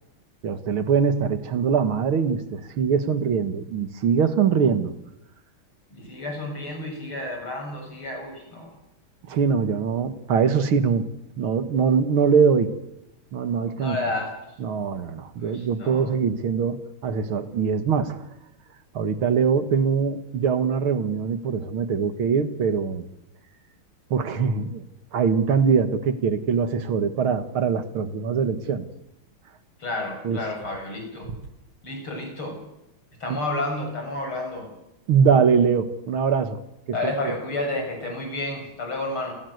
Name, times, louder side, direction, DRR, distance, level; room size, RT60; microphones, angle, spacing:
voice 1, 0.4-4.9 9.3-11.1 11.4-12.8 13.3-14.0 14.6-18.2 18.9-23.0 24.1-24.8 25.1-28.9 30.2-30.4 33.3-33.4 35.1-36.6 36.9-37.3, right 6 dB, 80° right, 9 dB, 2.4 m, -22 dB
voice 2, 5.9-8.7 13.8-14.3 15.4-16.0 29.8-31.3 31.8-32.6 33.2-34.7 36.9-39.3, left 2 dB, 85° left, 3 dB, 8.1 m, -31 dB
29.0 x 17.0 x 8.1 m, 0.90 s
omnidirectional pair, 2.3 m